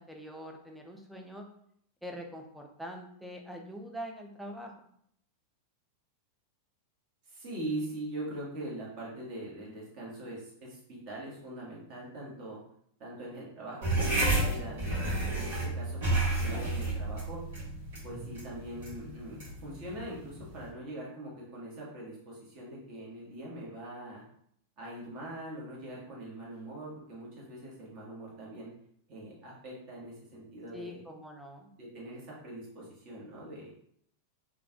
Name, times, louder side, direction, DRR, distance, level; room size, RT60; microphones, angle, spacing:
voice 1, 0.0-1.5 2.0-4.8 30.7-31.7, equal, ahead, 1 dB, 0.5 m, -44 dB
voice 2, 7.2-12.6 13.0-17.4 18.0-24.2 24.8-28.7 29.1-31.0 31.8-33.7, right 1 dB, 40° right, -5 dB, 1.4 m, -42 dB
sound 1, 13.8-20.7, right 2 dB, 55° right, 1.4 m, -31 dB
3.8 x 2.3 x 2.8 m, 0.68 s
figure-of-eight pair, 90°, 0 cm